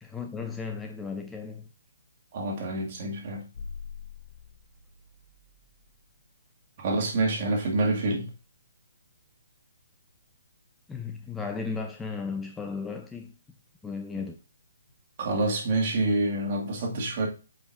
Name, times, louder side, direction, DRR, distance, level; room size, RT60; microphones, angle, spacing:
voice 1, 0.0-1.7 10.9-13.3 13.8-14.4, left 5 dB, 10° left, 0.5 m, -35 dB
voice 2, 2.3-3.4 6.8-8.3 15.2-17.3, right 2 dB, 45° right, 2.1 m, -27 dB
sound 1, 3.5-6.0, left 5 dB, 70° left, 1.5 m, -44 dB
8.4 x 5.0 x 2.6 m
hypercardioid pair, 145°, 0 cm